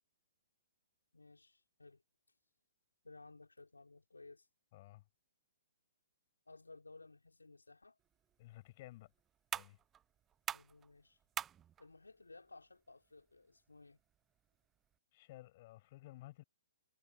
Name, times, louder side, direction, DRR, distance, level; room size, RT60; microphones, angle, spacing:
voice 1, 1.1-2.0 3.0-4.5 6.5-8.0 10.5-11.2 11.8-14.0, left 3 dB, 90° left, 4.6 m, -58 dB
voice 2, 4.7-5.0 8.4-9.1 9.5-9.8 15.1-16.4, left 17 dB, 45° left, 7.3 m, -55 dB
sound 1, 8.0-15.0, right 9 dB, 20° right, 0.8 m, -49 dB
figure-of-eight pair, 125°, 0 cm